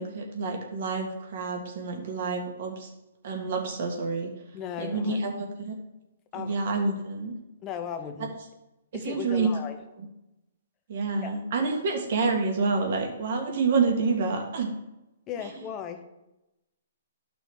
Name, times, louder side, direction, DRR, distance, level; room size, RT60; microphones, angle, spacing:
voice 1, 0.0-2.9 3.2-4.3 4.8-5.3 5.7-5.8 6.4-7.3 9.0-9.5 10.9-14.7, right 4 dB, 55° right, 2 dB, 1.8 m, -28 dB
voice 2, 4.5-5.2 6.3-6.6 7.6-8.3 8.9-9.8 11.2-11.3 15.3-16.0, left 8 dB, 25° left, 7 dB, 0.9 m, -36 dB
11.5 x 6.2 x 3.5 m, 0.95 s
hypercardioid pair, 145°, 0 cm